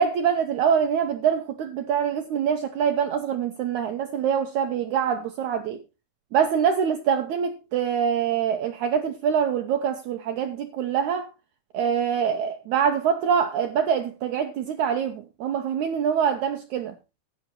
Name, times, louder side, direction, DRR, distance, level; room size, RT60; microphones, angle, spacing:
voice 1, 0.0-5.8 6.3-11.3 11.7-17.0, right 7 dB, 70° right, 1.9 m, -24 dB
12.5 x 8.6 x 4.2 m
omnidirectional pair, 4.2 m